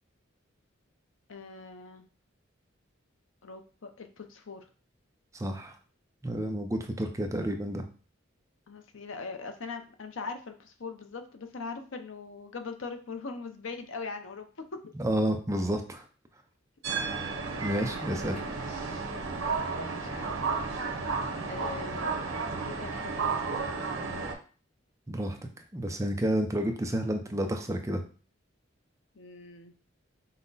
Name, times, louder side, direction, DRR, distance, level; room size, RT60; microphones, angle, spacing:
voice 1, 1.3-2.0 3.4-4.7 7.1-7.2 8.7-14.5 14.7-14.8 18.7-19.0 19.7-20.4 21.5-22.3 22.5-24.2 29.1-29.7, left 4 dB, 80° left, 6 dB, 0.7 m, -41 dB
voice 2, 5.3-5.7 6.2-7.8 15.0-16.0 17.6-18.4 25.1-25.4 25.7-28.0, right 1 dB, 15° right, 5 dB, 0.5 m, -30 dB
sound 1, 16.8-24.3, right 4 dB, 80° right, 0.9 m, -33 dB
5.6 x 2.2 x 3.9 m, 0.38 s
head